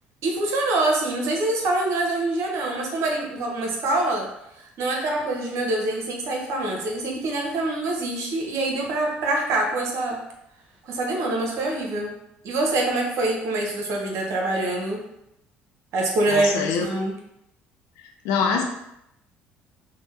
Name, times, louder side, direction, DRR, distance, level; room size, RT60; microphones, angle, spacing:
voice 1, 0.2-4.2 4.8-10.2 10.9-12.1 12.4-15.0 15.9-17.1, right 2 dB, 60° right, 1 dB, 0.7 m, -25 dB
voice 2, 16.3-16.9 18.2-18.6, left 6 dB, 70° left, 2 dB, 0.5 m, -23 dB
2.8 x 2.0 x 3.2 m, 0.82 s
hypercardioid pair, 60°, 5 cm